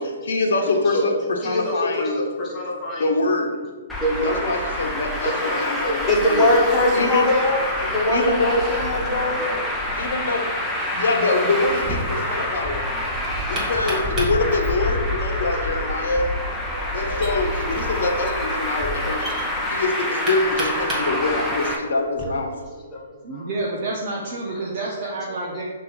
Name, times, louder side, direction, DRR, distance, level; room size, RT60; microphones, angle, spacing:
voice 1, 0.0-2.3 3.0-3.5 4.2-6.5 6.9-7.3 8.1-8.6 9.9-10.5 10.9-12.8 13.5-16.3 16.9-19.3 19.7-22.5, left 3 dB, 65° left, 3 dB, 1.1 m, -24 dB
voice 2, 1.4-3.2 4.0-4.5 5.2-9.7 11.4-11.5 12.2-12.8 13.6-13.7 15.3-16.0 16.7-17.2 18.7-19.1 19.6-19.9 22.6-22.7 22.9-23.5 24.4-24.5, left 1 dB, 20° left, -4 dB, 1.7 m, -24 dB
Traffic noise roadway noise, 3.9-21.8, left 1 dB, 5° left, 1.0 m, -27 dB
Knock, 11.7-22.3, right 1 dB, 20° right, 1.6 m, -35 dB
voice 3, 23.2-25.6, right 2 dB, 40° right, -4 dB, 1.0 m, -29 dB
5.9 x 3.3 x 5.5 m, 1.3 s
figure-of-eight pair, 125°, 0 cm